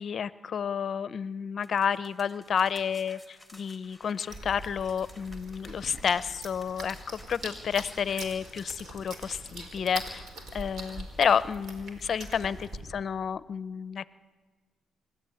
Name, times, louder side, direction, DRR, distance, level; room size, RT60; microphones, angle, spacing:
voice 1, 0.0-10.2 10.5-12.7 12.9-14.1, left 7 dB, 50° left, 17 dB, 0.6 m, -30 dB
sound 1, 1.6-8.7, left 1 dB, 5° right, 3.7 m, -53 dB
sound 2, 4.3-12.8, right 1 dB, 60° right, 4.9 m, -43 dB
25.5 x 13.0 x 9.7 m, 1.4 s
cardioid pair, 90°, 0 cm